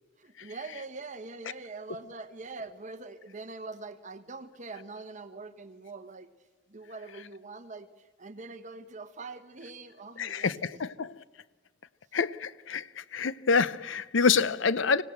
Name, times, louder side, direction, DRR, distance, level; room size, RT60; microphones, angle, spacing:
voice 1, 0.2-6.3 6.7-10.6, right 3 dB, 40° right, 1.3 m, -43 dB
voice 2, 10.2-11.2 12.1-15.0, left 5 dB, 70° left, 0.6 m, -27 dB
25.0 x 17.5 x 7.9 m
head